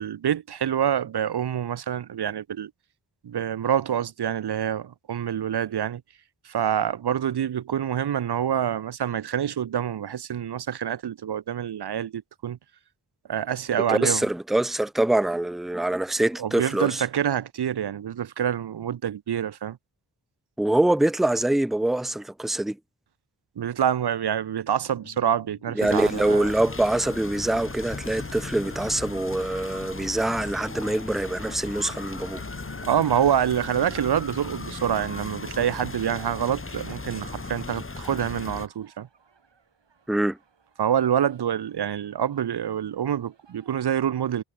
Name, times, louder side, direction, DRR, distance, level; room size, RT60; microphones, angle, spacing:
voice 1, 0.0-2.7 3.2-6.0 6.4-12.6 13.3-14.2 16.4-19.8 23.6-26.5 32.8-39.1 40.8-44.4, right 9 dB, 65° right, 0.7 m, -26 dB
voice 2, 13.9-17.0 20.6-22.8 25.7-32.4 40.1-40.4, right 1 dB, ahead, 0.7 m, -24 dB
sound 1, 24.8-25.8 26.1-27.0 27.4-30.4 30.6-34.0, left 6 dB, 90° left, 3.3 m, -51 dB
sound 2, 25.8-38.7, left 3 dB, 30° left, 1.9 m, -37 dB
sound 3, 29.3-43.8, right 5 dB, 85° right, 7.1 m, -62 dB
wide cardioid pair, 65°, 42 cm